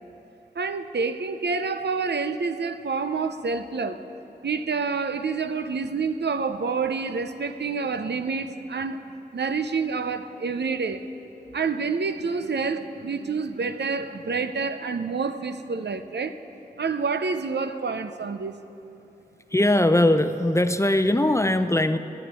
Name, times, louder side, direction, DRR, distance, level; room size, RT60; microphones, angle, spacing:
voice 1, 0.6-4.0 4.4-9.0 9.3-11.1 11.5-16.4 16.8-18.6, right 4 dB, 80° right, 10 dB, 0.6 m, -28 dB
voice 2, 19.5-22.0, left 1 dB, 15° left, 10 dB, 0.6 m, -20 dB
14.0 x 9.5 x 8.2 m, 2.9 s
cardioid pair, 40°, 17 cm